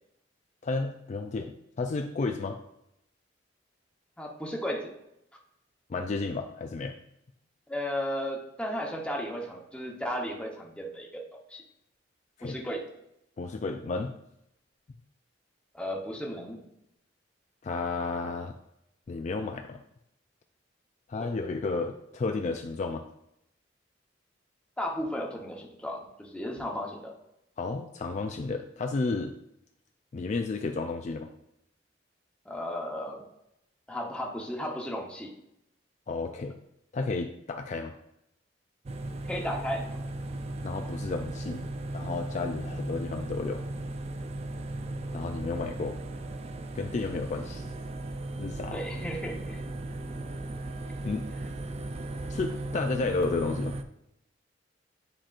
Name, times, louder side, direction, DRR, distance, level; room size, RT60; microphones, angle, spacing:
voice 1, 0.6-2.6 5.9-7.0 12.4-12.6 13.4-14.1 17.6-18.5 19.1-19.8 21.1-23.0 27.6-29.3 30.1-31.3 36.1-36.6 36.9-37.9 40.6-41.6 41.9-43.6 45.1-46.0 46.8-47.7 48.4-48.8 51.0-51.3 52.3-53.8, left 3 dB, 40° left, 5 dB, 0.3 m, -32 dB
voice 2, 4.2-4.9 7.7-11.2 11.5-11.6 12.4-12.8 15.7-16.6 24.8-27.1 32.4-33.2 33.9-35.3 39.3-39.9 48.7-49.6, equal, 5° left, 0 dB, 1.0 m, -34 dB
sound 1, 38.9-53.8, right 2 dB, 35° right, 0.4 m, -36 dB
9.9 x 4.3 x 2.5 m, 0.81 s
head